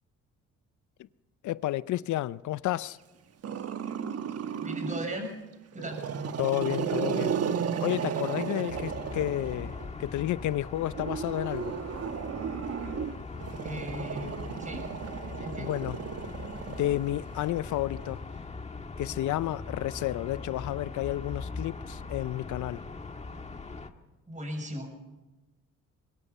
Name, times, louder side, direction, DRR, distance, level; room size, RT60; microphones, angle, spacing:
voice 1, 1.4-3.0 6.4-7.4 7.8-11.7 15.6-16.0 16.7-18.2 19.0-22.8, left 14 dB, 75° left, 0.6 m, -31 dB
Growling, 3.4-5.2 5.7-9.9 10.9-17.4, right 7 dB, 55° right, 1.2 m, -34 dB
voice 2, 4.5-5.4 5.7-6.0 13.6-14.9 15.4-15.7 24.3-25.1, equal, 25° right, 6.6 m, -37 dB
sound 1, 8.7-23.9, left 4 dB, 20° left, 1.6 m, -41 dB
23.0 x 21.5 x 5.6 m
cardioid pair, 90°, 30 cm